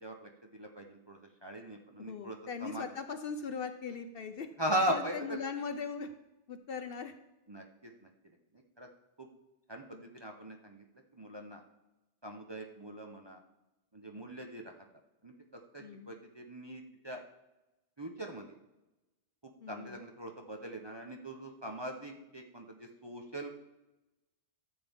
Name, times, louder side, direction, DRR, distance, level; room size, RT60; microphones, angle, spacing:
voice 1, 0.0-2.9 4.6-5.4 7.5-8.1 8.8-8.9 9.2-9.3 9.7-10.8 11.1-11.6 12.2-13.4 13.9-14.7 15.2-15.3 15.7-17.2 18.0-18.6 19.7-23.6, right 1 dB, 25° right, 2 dB, 0.7 m, -39 dB
voice 2, 2.0-4.5 4.9-6.1 6.5-7.1 9.9-10.1 15.8-16.2 19.6-20.0, left 5 dB, 60° left, 8 dB, 0.8 m, -40 dB
13.0 x 7.6 x 3.5 m, 1.0 s
omnidirectional pair, 1.2 m